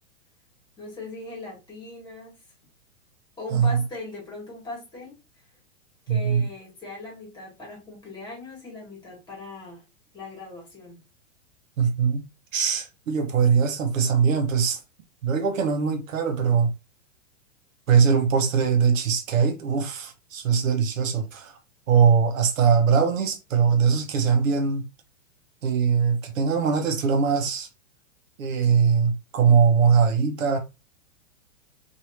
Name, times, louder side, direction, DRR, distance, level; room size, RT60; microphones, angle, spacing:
voice 1, 0.8-2.3 3.4-5.2 6.1-9.8 10.1-11.0, left 2 dB, 10° left, 1.6 m, -39 dB
voice 2, 3.5-3.8 6.1-6.5 11.8-12.2 12.5-14.8 15.2-16.7 17.9-21.5 21.9-24.9 25.6-27.7 28.4-30.6, right 6 dB, 85° right, 0.9 m, -21 dB
3.1 x 2.7 x 2.8 m
hypercardioid pair, 145°, 39 cm